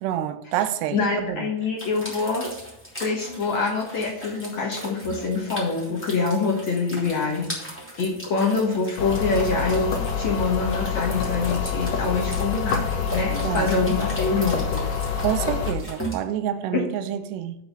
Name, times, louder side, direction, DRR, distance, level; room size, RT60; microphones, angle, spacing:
voice 1, 0.0-1.5 13.4-13.7 15.2-17.6, right 11 dB, 90° right, 2.7 m, -27 dB
voice 2, 0.9-2.5 3.0-7.5 8.0-14.8 16.7-16.8, left 4 dB, 60° left, 2.0 m, -25 dB
sound 1, 1.8-16.1, right 1 dB, 5° left, 2.4 m, -38 dB
sound 2, 9.0-15.7, left 6 dB, 80° left, 1.4 m, -27 dB
6.3 x 6.1 x 7.1 m
omnidirectional pair, 4.7 m